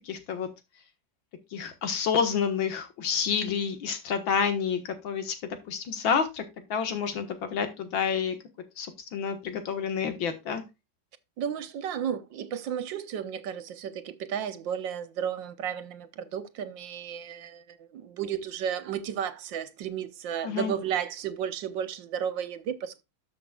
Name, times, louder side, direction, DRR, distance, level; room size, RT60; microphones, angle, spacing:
voice 1, 0.1-0.5 1.5-6.4 6.7-8.4 8.8-10.6 20.4-20.7, left 7 dB, 75° left, 2.2 m, -29 dB
voice 2, 11.4-23.0, right 8 dB, 70° right, 1.5 m, -33 dB
13.0 x 6.3 x 2.3 m
omnidirectional pair, 2.1 m